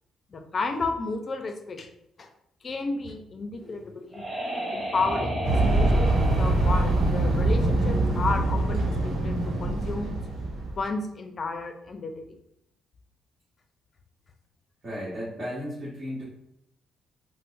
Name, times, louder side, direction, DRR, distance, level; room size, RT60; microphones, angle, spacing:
voice 1, 0.3-1.9 2.2-2.3 2.6-4.3 4.7-5.3 5.7-10.2 10.7-12.2, left 3 dB, 40° left, 5 dB, 0.5 m, -32 dB
sound 1, 3.6-8.2, right 1 dB, 20° right, 1.0 m, -33 dB
sound 2, 5.4-10.8, right 2 dB, 75° right, 0.9 m, -24 dB
voice 2, 14.8-16.2, equal, 40° right, -9 dB, 1.2 m, -34 dB
4.4 x 2.0 x 2.5 m, 0.78 s
cardioid pair, 90°, 0 cm